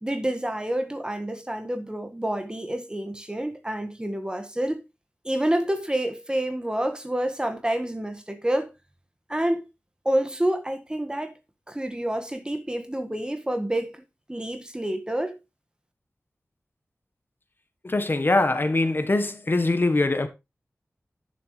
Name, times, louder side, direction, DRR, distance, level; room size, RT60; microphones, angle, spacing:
voice 1, 0.0-4.8 5.3-8.7 9.3-9.6 10.1-11.4 11.7-14.0 14.3-15.4, right 1 dB, 15° right, 1.7 m, -28 dB
voice 2, 17.8-20.3, left 2 dB, 45° left, 1.3 m, -22 dB
10.5 x 7.8 x 3.3 m
wide cardioid pair, 55°, 5 cm